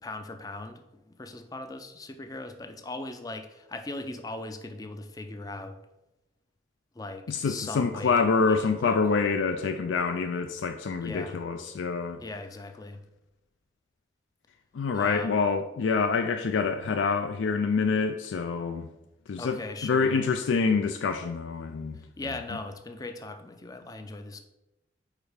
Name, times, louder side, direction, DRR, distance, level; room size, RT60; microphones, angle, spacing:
voice 1, 0.0-5.8 7.0-9.0 11.0-11.4 12.2-13.0 14.9-15.3 19.4-20.2 22.2-24.4, left 2 dB, 20° left, 0.4 m, -39 dB
voice 2, 7.3-12.2 14.7-18.9 19.3-22.0, left 5 dB, 85° left, 0.4 m, -26 dB
5.0 x 4.3 x 4.9 m
head